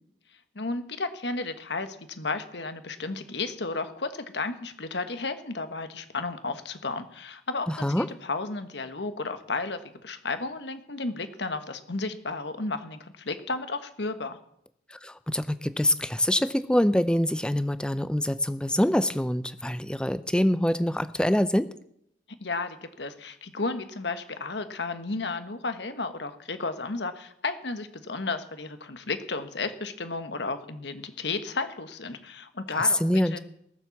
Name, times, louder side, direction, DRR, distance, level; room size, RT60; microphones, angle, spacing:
voice 1, 0.5-7.7 8.0-14.4 22.4-33.0 33.3-33.4, left 3 dB, 70° left, 9 dB, 1.4 m, -33 dB
voice 2, 7.7-8.1 14.9-21.7 33.0-33.4, left 1 dB, 5° left, 14 dB, 0.6 m, -25 dB
18.0 x 7.5 x 7.1 m, 0.74 s
head